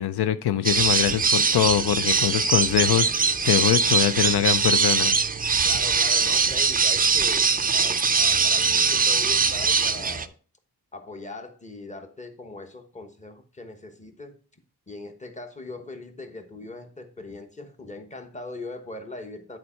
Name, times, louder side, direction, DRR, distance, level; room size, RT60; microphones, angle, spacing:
voice 1, 0.0-5.2, left 11 dB, 85° left, 13 dB, 0.5 m, -23 dB
sound 1, 0.7-10.3, right 5 dB, 25° right, 0.4 m, -22 dB
voice 2, 5.6-10.3 10.9-14.4 14.9-19.6, left 2 dB, 20° left, 5 dB, 1.1 m, -40 dB
9.6 x 4.5 x 4.4 m, 0.39 s
wide cardioid pair, 125°, 38 cm